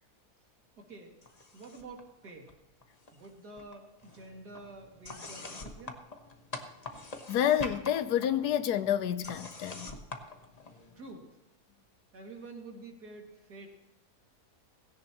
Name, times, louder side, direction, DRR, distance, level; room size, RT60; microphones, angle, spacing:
voice 1, 0.8-1.2 1.5-2.5 3.1-6.0 10.9-11.4 12.1-13.7, right 2 dB, 85° right, 3.0 m, -48 dB
sound 1, 1.2-2.0 2.3-3.3 3.6-11.1, left 2 dB, 30° left, 1.1 m, -45 dB
voice 2, 7.3-9.9, left 10 dB, 85° left, 1.3 m, -29 dB
17.0 x 16.5 x 3.0 m
omnidirectional pair, 1.6 m